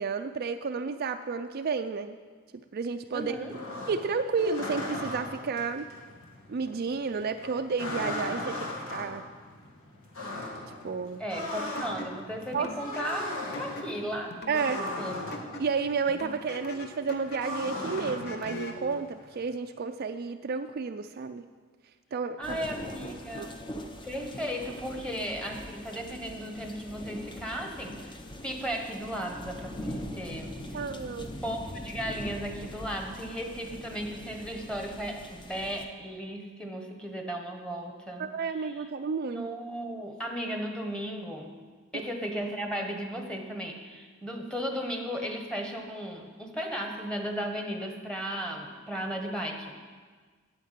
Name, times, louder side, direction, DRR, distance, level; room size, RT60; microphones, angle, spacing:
voice 1, 0.0-2.2 2.7-3.3 3.9-5.9 6.5-9.2 10.8-11.2 12.5-12.7 14.5-14.8 15.6-21.5 22.1-22.6 23.4-23.5 30.7-31.3 38.2-39.5 41.9-42.0, right 5 dB, 45° right, 7 dB, 0.4 m, -31 dB
sound 1, 3.1-19.5, left 1 dB, 80° left, 1.9 m, -38 dB
voice 2, 3.1-3.6 11.2-15.2 22.4-23.6 24.0-28.1 28.4-30.8 31.4-38.3 39.2-41.5 41.9-49.8, equal, 5° left, 2 dB, 1.2 m, -35 dB
sound 2, 11.7-18.9, left 1 dB, 50° left, 1.0 m, -43 dB
sound 3, 22.4-35.9, equal, 25° left, 0.8 m, -42 dB
9.2 x 8.8 x 7.4 m, 1.5 s
head